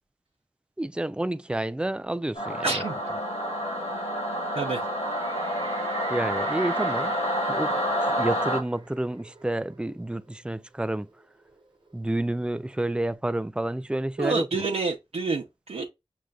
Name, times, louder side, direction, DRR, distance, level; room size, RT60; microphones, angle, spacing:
voice 1, 0.8-2.8 6.1-7.1 7.5-7.7 8.2-11.1 11.9-14.6, right 1 dB, 10° right, 0.3 m, -29 dB
Singing / Musical instrument, 2.3-8.6, equal, 85° left, 1.3 m, -28 dB
voice 2, 2.6-3.0 4.5-4.8 14.2-15.9, right 3 dB, 85° right, 0.8 m, -28 dB
sound 1, 5.1-10.3 10.6-10.7 11.1-12.7, right 3 dB, 50° right, 1.0 m, -41 dB
6.5 x 2.4 x 2.4 m
cardioid pair, 45°, 11 cm